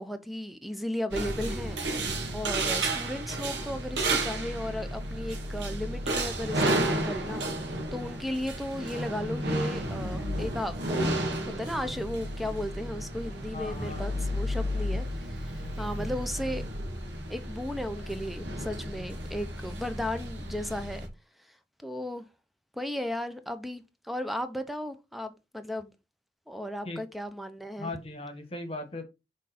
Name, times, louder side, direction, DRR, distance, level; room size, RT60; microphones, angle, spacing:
voice 1, 0.0-1.8 2.3-16.6 17.3-21.1 21.8-22.2 22.7-25.9 26.5-27.9, left 1 dB, ahead, 0.7 m, -35 dB
sound 1, 1.1-21.1, right 1 dB, 80° right, 1.5 m, -32 dB
voice 2, 13.5-14.5 15.6-16.2 26.8-27.0 27.8-29.0, left 2 dB, 35° left, 1.3 m, -39 dB
6.2 x 3.7 x 4.2 m
head